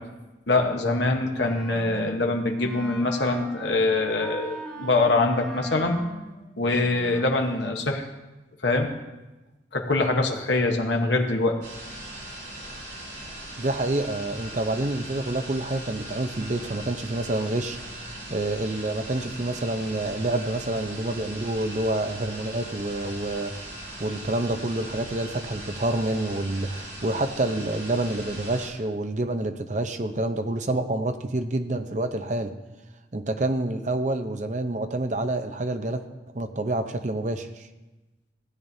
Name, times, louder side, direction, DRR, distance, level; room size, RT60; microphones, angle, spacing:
voice 1, 0.5-6.0 6.6-8.1 8.6-8.9 9.7-11.6, left 2 dB, 75° left, 2 dB, 1.1 m, -24 dB
Wind instrument woodwind instrument, 1.3-7.9, right 1 dB, 5° left, 1.4 m, -41 dB
sound 1, 11.6-28.7, right 1 dB, 75° right, 4.2 m, -39 dB
voice 2, 13.6-17.8 18.0-23.6 24.0-32.5 33.1-37.6, right 2 dB, 40° right, 8 dB, 0.7 m, -28 dB
16.0 x 8.8 x 2.7 m, 1.1 s
head